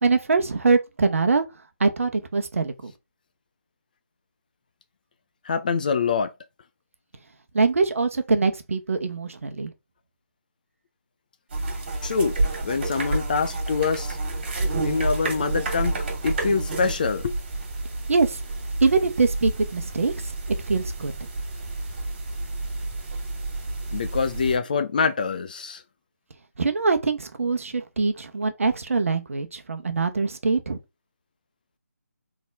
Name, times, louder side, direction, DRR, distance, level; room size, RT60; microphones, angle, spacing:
voice 1, 0.0-1.4 1.8-2.9 7.5-9.7 18.1-18.4 18.8-20.3 20.7-21.1 26.6-30.8, right 4 dB, 55° right, 1.0 m, -23 dB
voice 2, 5.4-6.3 12.0-14.2 14.8-17.4 23.9-25.8, left 5 dB, 30° left, 0.4 m, -25 dB
sound 1, 11.5-24.6, right 2 dB, 35° right, 2.6 m, -29 dB
4.1 x 3.6 x 3.4 m
figure-of-eight pair, 155°, 9 cm